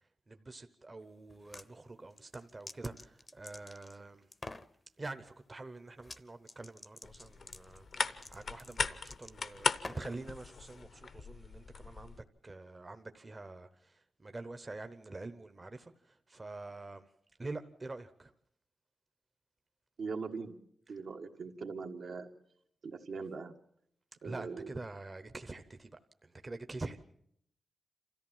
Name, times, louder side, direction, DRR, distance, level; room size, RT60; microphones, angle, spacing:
voice 1, 0.3-4.3 5.0-17.0 17.4-18.3 20.9-21.0 24.2-27.0, right 2 dB, 25° right, 0.8 m, -46 dB
sound 1, 1.3-1.7 2.1-4.0 4.3-4.7 6.0-6.2 6.5-10.2, left 2 dB, 25° left, 0.7 m, -49 dB
sound 2, 7.0-12.2, left 5 dB, 60° left, 0.9 m, -38 dB
voice 2, 20.0-20.5 20.9-22.3 22.8-23.5 24.2-24.7, right 4 dB, 75° right, 1.5 m, -41 dB
27.5 x 14.0 x 7.3 m
wide cardioid pair, 115°, 0 cm